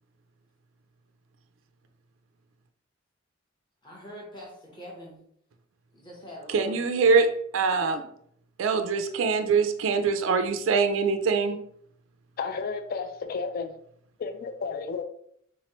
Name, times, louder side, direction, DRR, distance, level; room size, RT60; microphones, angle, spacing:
voice 1, 3.8-5.2 5.9-6.8, equal, 25° left, -3 dB, 0.9 m, -44 dB
voice 2, 6.5-7.3 7.5-8.0 8.6-11.6, right 5 dB, 80° right, 8 dB, 0.4 m, -23 dB
voice 3, 12.4-13.7 14.2-15.0, left 5 dB, 50° left, 8 dB, 0.3 m, -32 dB
3.6 x 3.0 x 2.9 m, 0.68 s
head